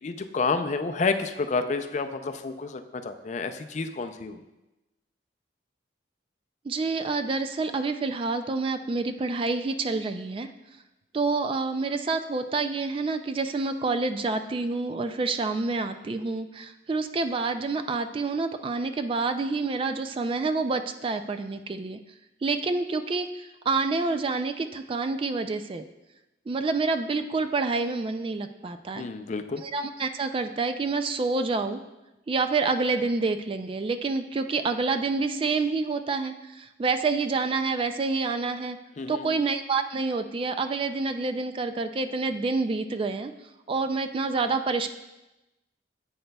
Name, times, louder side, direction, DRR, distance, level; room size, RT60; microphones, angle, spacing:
voice 1, 0.0-4.4 29.0-29.6 39.0-39.4, left 4 dB, 40° left, 8 dB, 0.4 m, -29 dB
voice 2, 6.6-10.5 11.1-22.0 22.4-25.8 26.5-29.1 29.6-31.8 32.3-38.8 39.1-43.3 43.7-44.9, right 3 dB, 30° right, 8 dB, 0.3 m, -28 dB
10.5 x 7.9 x 2.3 m, 1.0 s
head